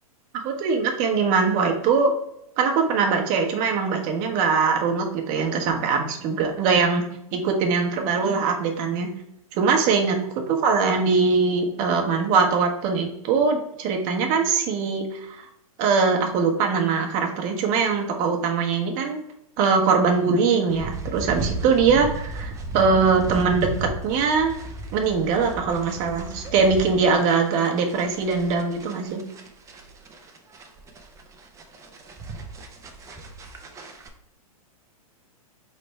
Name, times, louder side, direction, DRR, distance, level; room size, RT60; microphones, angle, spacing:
voice 1, 0.3-2.1 2.6-7.0 7.3-9.1 9.5-15.5 15.8-19.2 19.6-24.5 24.9-29.2, right 5 dB, 40° right, 3 dB, 0.9 m, -22 dB
sound 1, 20.7-34.1, right 3 dB, 15° right, 0.5 m, -35 dB
4.2 x 3.3 x 3.2 m, 0.77 s
hypercardioid pair, 115°, 19 cm